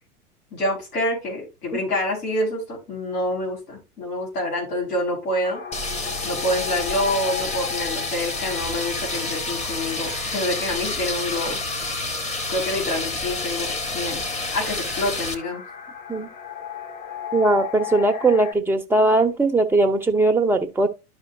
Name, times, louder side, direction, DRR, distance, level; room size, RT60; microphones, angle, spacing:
voice 1, 0.5-5.6 6.2-11.6 12.5-14.2 14.5-15.6, left 1 dB, 80° left, 5.1 m, -27 dB
sound 1, 5.4-18.5, left 7 dB, 50° left, 1.8 m, -36 dB
sound 2, 5.7-15.3, left 2 dB, 15° left, 1.1 m, -29 dB
voice 2, 17.3-20.9, right 2 dB, 5° right, 0.7 m, -19 dB
12.0 x 5.0 x 2.6 m
hypercardioid pair, 105°, 46 cm